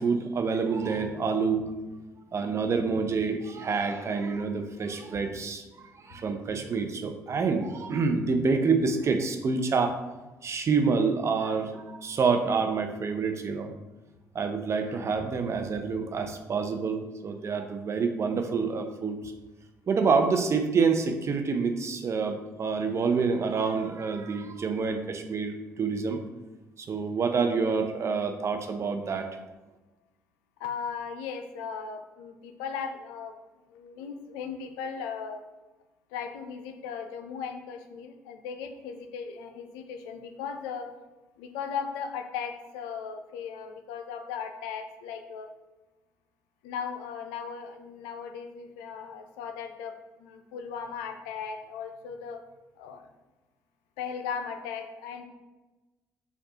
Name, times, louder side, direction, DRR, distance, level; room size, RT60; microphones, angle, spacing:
voice 1, 0.0-1.7 2.3-10.0 10.4-13.7 14.3-19.2 19.9-26.2 26.8-29.4, right 5 dB, 45° right, 6 dB, 0.5 m, -27 dB
voice 2, 30.6-33.3 33.7-35.4 36.1-40.9 41.4-45.5 46.6-49.9 50.2-52.4 52.8-53.0 54.0-55.2, left 6 dB, 85° left, 6 dB, 0.3 m, -37 dB
4.5 x 2.3 x 2.8 m, 1.1 s
hypercardioid pair, 60°, 7 cm